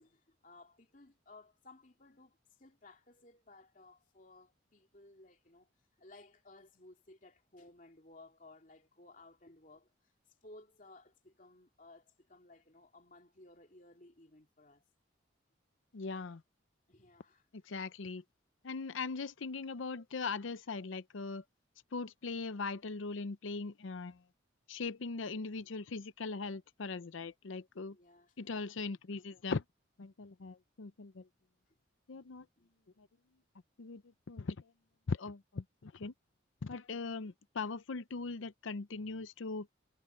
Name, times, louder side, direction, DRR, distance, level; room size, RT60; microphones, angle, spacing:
voice 1, 0.0-5.7 6.0-9.9 10.4-14.8 16.9-17.5 27.9-28.6 32.6-32.7, left 2 dB, 40° left, 3.0 m, -58 dB
voice 2, 15.9-16.4 17.7-18.2 18.6-21.4 21.9-24.2 24.7-28.0 28.4-29.6 30.0-31.3 32.1-32.5 33.0-33.1 33.8-34.0 34.3-34.7 35.1-36.1 36.6-39.7, left 4 dB, 85° left, 0.6 m, -40 dB
head